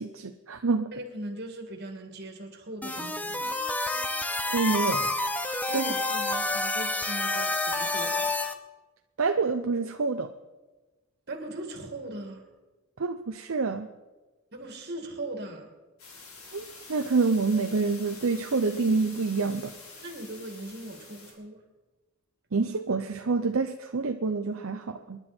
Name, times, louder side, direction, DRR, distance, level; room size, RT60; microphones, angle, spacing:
voice 1, 0.0-0.9 4.5-5.1 5.7-5.9 9.2-10.3 13.0-13.9 16.5-19.7 22.5-25.2, right 4 dB, 70° right, 6 dB, 0.7 m, -27 dB
voice 2, 0.9-3.5 5.7-8.3 11.3-12.4 14.5-15.7 20.0-21.6, right 1 dB, 50° right, 4 dB, 2.4 m, -39 dB
sound 1, 2.8-8.5, left 2 dB, 5° left, 0.7 m, -29 dB
sound 2, 16.0-21.3, left 3 dB, 85° left, 4.0 m, -47 dB
27.5 x 10.5 x 4.4 m, 1.2 s
head